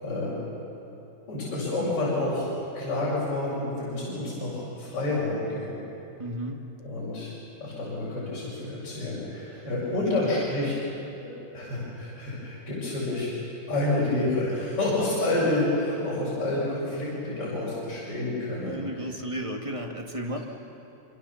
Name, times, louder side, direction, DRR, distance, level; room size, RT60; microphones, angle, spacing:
voice 1, 0.0-0.4 1.3-2.5 2.7-5.8 6.8-7.3 7.6-10.8 11.2-19.2, left 2 dB, 45° left, -8 dB, 7.2 m, -29 dB
voice 2, 6.2-6.6 10.7-10.8 18.6-20.4, right 1 dB, 15° right, 1 dB, 1.1 m, -33 dB
27.0 x 26.0 x 7.2 m, 2.9 s
omnidirectional pair, 3.5 m